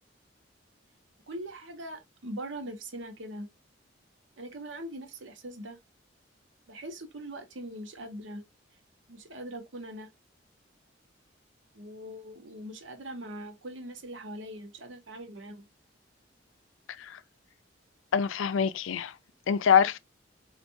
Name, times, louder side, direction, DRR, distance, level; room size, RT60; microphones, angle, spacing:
voice 1, 1.3-3.5 4.4-5.8 6.7-8.4 9.1-10.1 11.7-15.7, right 1 dB, 75° right, 0.9 m, -41 dB
voice 2, 18.1-19.1 19.5-20.0, left 7 dB, 85° left, 0.4 m, -24 dB
4.5 x 2.4 x 2.8 m
head